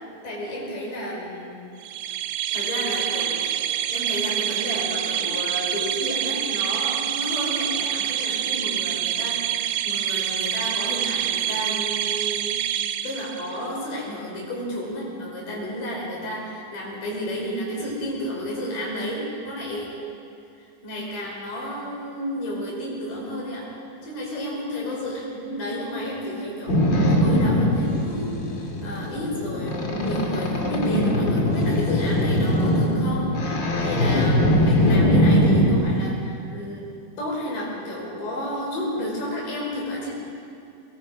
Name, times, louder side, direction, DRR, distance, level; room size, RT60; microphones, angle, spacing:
voice 1, 0.2-1.6 2.3-3.5 3.9-12.6 13.0-20.0 20.8-23.7 24.0-36.9 37.2-40.1, equal, 75° left, -4 dB, 6.8 m, -31 dB
sound 1, 1.8-13.7, right 10 dB, 75° right, 1.8 m, -26 dB
Boat Water vehicle, 26.7-35.7, equal, 40° left, 2.5 m, -21 dB
23.5 x 21.5 x 5.2 m, 2.4 s
omnidirectional pair, 3.8 m